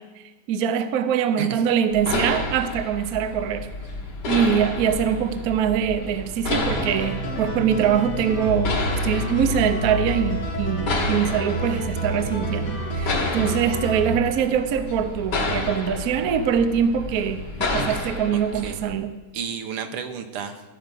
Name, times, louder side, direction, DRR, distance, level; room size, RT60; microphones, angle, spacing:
voice 1, 0.2-3.7 4.2-19.1, right 8 dB, 60° right, 9 dB, 0.9 m, -23 dB
sound 1, 1.9-18.9, left 2 dB, 55° left, 2.0 m, -31 dB
sound 2, 6.5-14.1, right 1 dB, 70° left, 3.3 m, -29 dB
voice 2, 19.3-20.6, right 7 dB, 90° right, 7 dB, 1.9 m, -32 dB
15.0 x 5.1 x 7.6 m, 1.2 s
omnidirectional pair, 2.4 m